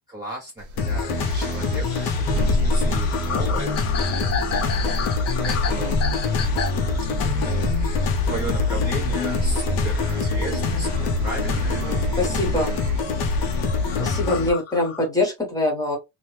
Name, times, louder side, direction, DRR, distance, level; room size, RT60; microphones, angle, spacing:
voice 1, 0.1-5.1 5.4-6.1 7.2-7.9 8.2-12.1 13.8-14.1, right 1 dB, 10° right, 0.7 m, -36 dB
sound 1, 0.6-14.1, left 1 dB, 45° right, 0.8 m, -28 dB
sound 2, 0.8-14.5, left 4 dB, 80° left, 0.8 m, -25 dB
sound 3, 1.7-11.6 12.1-13.1 13.6-15.1, left 6 dB, 40° left, 0.5 m, -33 dB
voice 2, 11.8-12.7 14.0-16.0, left 2 dB, 10° left, 1.1 m, -24 dB
2.9 x 2.2 x 3.2 m
cardioid pair, 170°, 42 cm